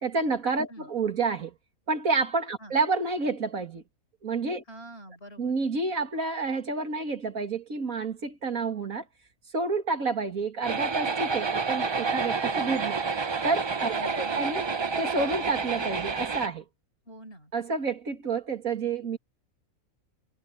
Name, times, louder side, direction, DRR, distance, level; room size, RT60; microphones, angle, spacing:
voice 1, 0.0-1.5 1.9-3.8 4.2-4.6 5.4-9.0 9.5-13.0 13.4-14.6 15.0-16.6 17.5-19.2, right 4 dB, 80° right, 2.8 m, -29 dB
voice 2, 4.7-5.5 13.9-14.6 17.1-17.5, right 1 dB, 45° left, 6.0 m, -46 dB
sound 1, 10.6-16.5, right 4 dB, 40° right, 0.3 m, -29 dB
omnidirectional pair, 1.4 m